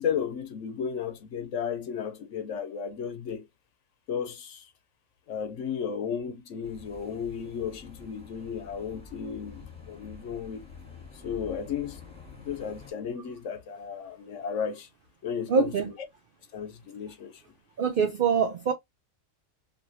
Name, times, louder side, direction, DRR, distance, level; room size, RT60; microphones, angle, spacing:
voice 1, 0.0-3.5 4.1-4.7 5.3-10.6 11.2-12.0 12.4-14.9 15.2-15.9 16.5-17.4, left 7 dB, 65° left, 1.0 m, -34 dB
sound 1, 6.6-12.9, left 5 dB, 5° left, 1.5 m, -48 dB
voice 2, 15.5-15.9 17.8-18.7, right 6 dB, 70° right, 0.5 m, -24 dB
3.0 x 2.9 x 2.6 m
omnidirectional pair, 1.4 m